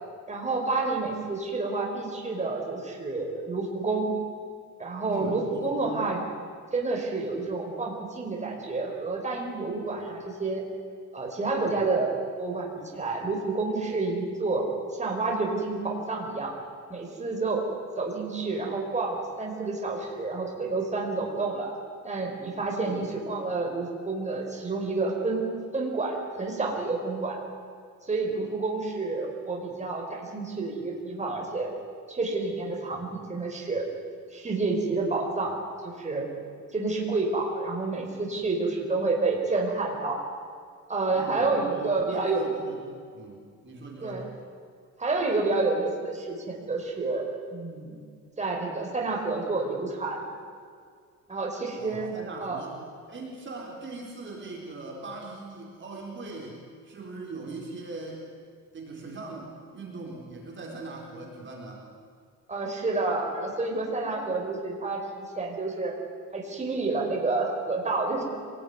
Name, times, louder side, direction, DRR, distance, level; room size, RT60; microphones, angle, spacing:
voice 1, 0.3-4.1 4.8-6.2 6.7-10.6 11.1-12.1 12.4-14.7 15.0-16.5 16.9-17.6 18.0-21.7 22.0-27.4 28.1-31.7 32.1-33.8 34.3-35.5 36.0-36.3 36.7-40.2 40.9-42.4 44.0-44.2 45.0-47.2 47.5-47.9 48.4-50.2 51.3-52.1 52.4-52.6 62.5-65.9 66.3-68.2, right 3 dB, 20° right, 0 dB, 4.7 m, -29 dB
voice 2, 5.0-6.1 11.7-11.9 22.8-23.1 41.1-42.8 43.1-44.3 51.8-52.8 53.1-58.2 58.7-61.8, right 3 dB, 40° right, -1 dB, 4.3 m, -40 dB
26.0 x 19.5 x 9.6 m, 2.1 s
cardioid pair, 140°, 31 cm